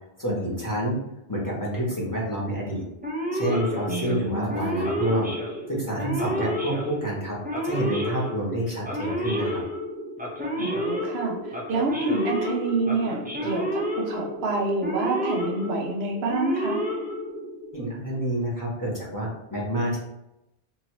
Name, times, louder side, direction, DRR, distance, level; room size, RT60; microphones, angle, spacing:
voice 1, 0.2-1.0 1.3-2.8 3.3-5.3 5.7-7.3 7.6-9.6 17.7-20.0, right 1 dB, 20° left, -5 dB, 0.8 m, -28 dB
Male speech man speaking / Siren, 3.0-17.7, equal, 15° right, 0.4 m, -30 dB
voice 2, 3.9-4.6 10.6-16.8, right 3 dB, 85° right, 0 dB, 1.0 m, -28 dB
2.9 x 2.7 x 2.9 m, 0.88 s
omnidirectional pair, 1.0 m